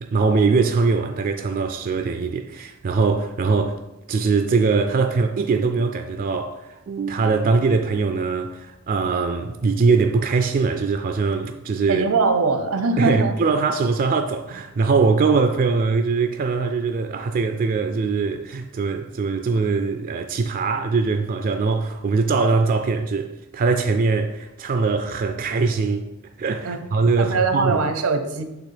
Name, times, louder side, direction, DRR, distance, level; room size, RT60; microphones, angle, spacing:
voice 1, 0.0-3.8 4.1-12.1 13.0-26.1 26.4-27.8, right 4 dB, 40° right, 0.3 m, -22 dB
voice 2, 11.9-13.3 26.6-26.8 27.2-28.4, right 4 dB, 80° right, 0.7 m, -21 dB
5.9 x 3.6 x 5.7 m
head